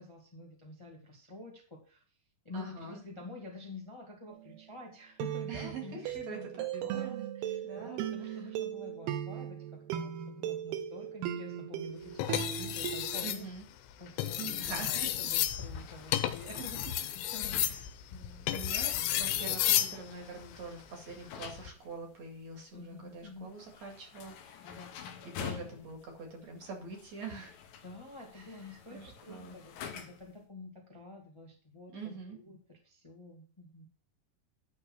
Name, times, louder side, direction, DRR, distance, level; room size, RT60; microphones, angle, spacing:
voice 1, 0.0-2.2 2.4-13.4 14.0-17.8 18.1-18.5 22.7-23.5 24.6-25.0 27.8-33.8, left 2 dB, 35° left, -1 dB, 0.4 m, -48 dB
voice 2, 2.5-3.0 5.5-6.4 6.8-7.3 7.6-8.4 13.2-13.6 14.4-15.1 16.5-16.6 17.6-17.8 18.5-24.8 25.4-27.6 28.3-29.6 31.9-32.4, right 4 dB, 45° right, 2 dB, 3.0 m, -44 dB
sound 1, 4.3-4.6 5.2-13.2, right 10 dB, 80° right, 2.7 m, -38 dB
sound 2, 12.2-13.4 14.1-20.0 21.4-21.7, left 12 dB, 90° left, 3.0 m, -32 dB
sound 3, 15.3-30.4, left 8 dB, 75° left, 2.2 m, -49 dB
12.0 x 4.4 x 6.3 m, 0.40 s
omnidirectional pair, 4.8 m